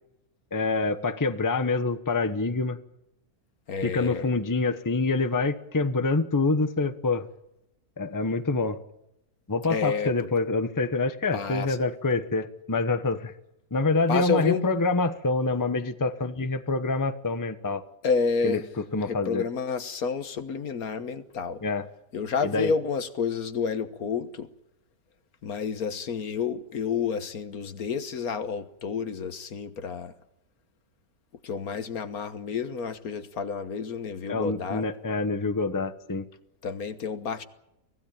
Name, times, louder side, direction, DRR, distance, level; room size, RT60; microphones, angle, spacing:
voice 1, 0.5-2.8 3.8-7.3 8.0-8.8 9.5-13.3 13.7-17.8 18.4-18.6 18.9-19.4 21.6-21.8 22.4-22.7 34.3-36.2, left 3 dB, 15° left, 1.0 m, -26 dB
voice 2, 3.7-4.3 9.7-10.3 11.3-11.8 14.1-14.7 18.0-18.7 19.0-21.6 22.1-24.5 25.4-30.1 31.4-34.9 36.6-37.4, left 5 dB, 65° left, 1.6 m, -30 dB
24.5 x 16.0 x 8.9 m
omnidirectional pair, 1.8 m